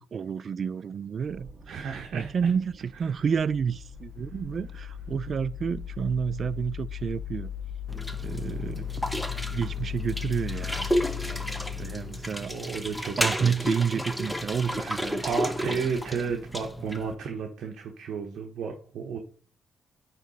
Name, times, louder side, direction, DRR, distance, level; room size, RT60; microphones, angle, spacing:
voice 1, 0.0-1.9 2.1-7.5 8.1-8.9 9.5-10.9 11.8-12.5 13.2-15.2 15.6-15.8, right 6 dB, 50° right, 0.3 m, -30 dB
sound 1, 1.1-9.4, right 3 dB, 25° right, 2.4 m, -50 dB
voice 2, 1.7-2.5 3.1-3.2 11.2-12.2 12.5-13.8 14.7-19.2, right 5 dB, 70° right, 0.9 m, -34 dB
sound 2, 3.5-12.6, left 11 dB, 40° left, 0.4 m, -37 dB
sound 3, 7.9-17.1, equal, 5° left, 0.7 m, -32 dB
8.9 x 3.2 x 4.0 m
cardioid pair, 90°, 0 cm